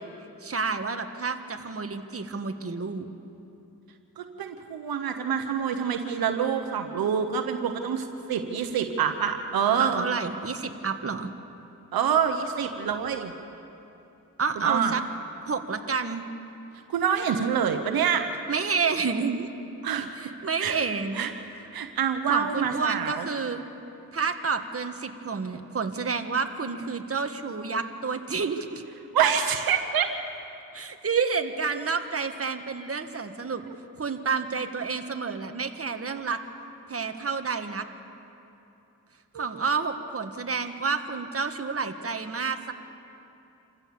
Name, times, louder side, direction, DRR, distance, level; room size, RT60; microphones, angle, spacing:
voice 1, 0.4-3.1 9.8-11.3 14.4-15.0 15.5-16.2 18.5-19.5 20.1-21.3 22.3-23.6 24.1-28.8 30.7-33.6 34.0-36.4 36.9-37.8 39.3-42.7, right 5 dB, 40° right, 6 dB, 1.7 m, -29 dB
voice 2, 4.2-10.0 11.9-13.3 14.6-14.9 16.9-18.2 19.8-20.1 20.6-20.8 21.2-21.3 21.7-23.3 29.1-30.1 39.3-39.5, right 7 dB, 90° right, 6 dB, 1.2 m, -26 dB
27.5 x 15.5 x 7.1 m, 2.8 s
cardioid pair, 55°, 35 cm